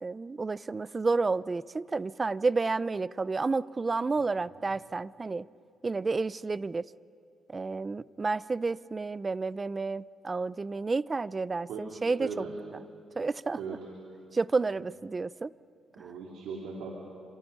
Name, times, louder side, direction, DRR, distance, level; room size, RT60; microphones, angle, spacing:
voice 1, 0.0-5.5 5.8-6.9 7.5-12.5 13.2-13.6 14.3-15.5 16.0-16.1, right 3 dB, 30° right, 18 dB, 0.6 m, -30 dB
voice 2, 12.2-12.5 13.6-13.8 15.9-16.9, right 5 dB, 85° right, -2 dB, 3.6 m, -38 dB
29.5 x 27.0 x 5.6 m, 2.6 s
cardioid pair, 90°, 0 cm